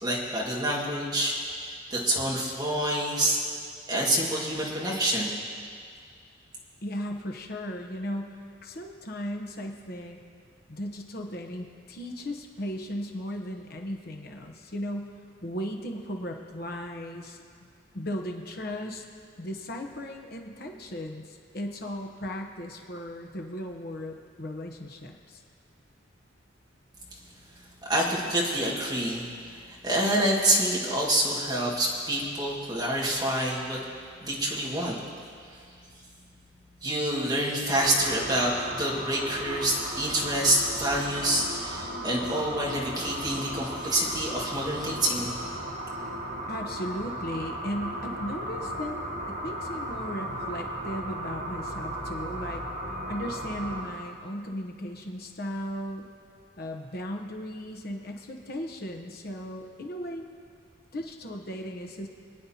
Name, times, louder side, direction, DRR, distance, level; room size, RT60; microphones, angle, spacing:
voice 1, 0.0-3.4 3.9-5.3 27.9-33.8 34.2-35.0 36.8-45.3, right 1 dB, 20° right, -4 dB, 1.8 m, -27 dB
voice 2, 6.8-10.2 10.7-15.1 15.4-17.7 17.9-19.0 19.4-25.4 46.5-49.0 49.3-52.6 53.1-56.1 56.6-60.3 60.9-62.1, equal, 50° left, 3 dB, 0.9 m, -36 dB
sound 1, 37.7-53.8, right 1 dB, 60° right, 3.2 m, -36 dB
25.5 x 9.7 x 2.8 m, 2.2 s
head